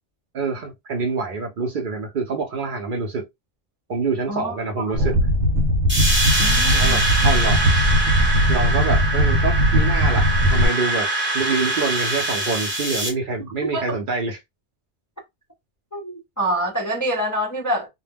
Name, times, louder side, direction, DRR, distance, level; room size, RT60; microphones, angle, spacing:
voice 1, 0.3-3.2 3.9-5.2 6.7-7.7 8.5-11.1 11.3-14.4, right 4 dB, 55° right, 0.6 m, -26 dB
voice 2, 4.3-4.8 6.4-7.0 13.6-13.8 15.9-17.9, right 1 dB, 25° left, 0.4 m, -26 dB
sound 1, 4.9-10.7, equal, 80° right, 0.9 m, -19 dB
sound 2, 5.9-13.1, right 1 dB, 10° right, 0.8 m, -23 dB
2.2 x 2.1 x 3.3 m
omnidirectional pair, 1.2 m